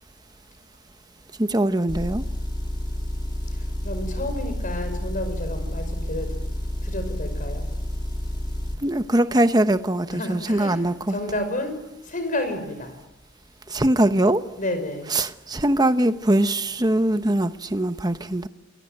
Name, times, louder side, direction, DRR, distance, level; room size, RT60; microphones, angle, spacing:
voice 1, 1.4-2.2 8.8-11.2 13.7-14.4 15.1-18.5, right 1 dB, 20° right, 10 dB, 1.0 m, -22 dB
Motor vehicle (road) / Engine, 1.9-8.8, left 1 dB, 25° left, 2.9 m, -29 dB
voice 2, 3.8-6.3 6.8-7.6 10.1-11.8 12.1-13.0 14.5-15.1, left 1 dB, 40° left, 8 dB, 5.8 m, -30 dB
28.5 x 21.5 x 9.1 m, 0.95 s
head